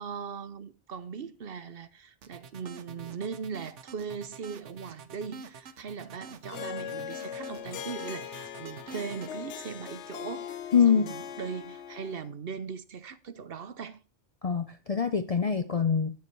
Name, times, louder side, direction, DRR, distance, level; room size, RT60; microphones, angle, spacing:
voice 1, 0.0-14.0, right 6 dB, 55° right, 0.9 m, -39 dB
sound 1, 2.2-9.3, right 5 dB, 80° right, 1.2 m, -47 dB
Harp, 6.5-12.3, left 9 dB, 80° left, 1.0 m, -40 dB
voice 2, 10.7-11.1 14.4-16.2, left 6 dB, 45° left, 0.5 m, -24 dB
9.5 x 9.0 x 4.5 m
omnidirectional pair, 1.2 m